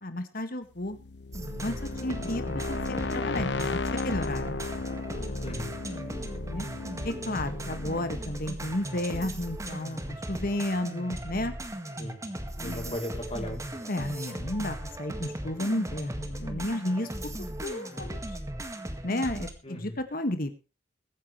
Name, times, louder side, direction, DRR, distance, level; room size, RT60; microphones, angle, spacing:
voice 1, 0.0-1.0 1.6-4.5 6.5-6.7 7.0-11.5 12.6-12.9 13.9-17.1 17.4-18.2 19.0-20.5, left 1 dB, 55° left, 8 dB, 1.9 m, -32 dB
sound 1, 0.8-9.6, left 3 dB, 75° left, 0.8 m, -35 dB
sound 2, 1.3-19.5, right 1 dB, 20° right, 2.0 m, -37 dB
voice 2, 5.4-5.8 12.0-12.2 12.6-13.8 19.6-20.0, left 1 dB, 35° left, 0 dB, 5.7 m, -37 dB
22.0 x 9.8 x 3.3 m, 0.30 s
head